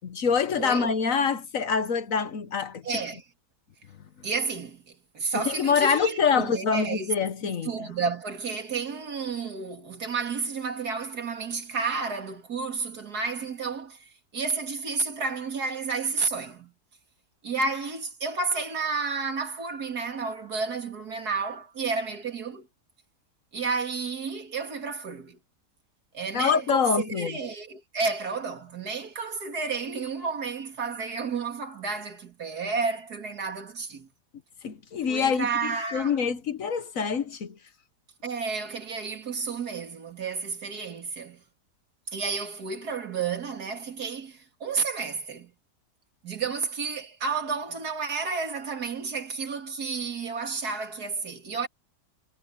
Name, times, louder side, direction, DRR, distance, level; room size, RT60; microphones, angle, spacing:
voice 1, 0.0-3.0 5.3-7.9 26.3-27.4 34.6-35.5 35.9-37.6, left 6 dB, 55° left, 1.3 m, -25 dB
voice 2, 0.6-0.9 2.8-3.2 4.2-4.8 5.1-7.1 7.4-16.7 17.4-22.7 23.5-25.4 26.1-26.9 27.2-34.1 35.1-36.2 38.2-41.4 42.1-45.5 46.2-51.7, right 4 dB, 70° right, 2.9 m, -31 dB
omnidirectional pair, 1.8 m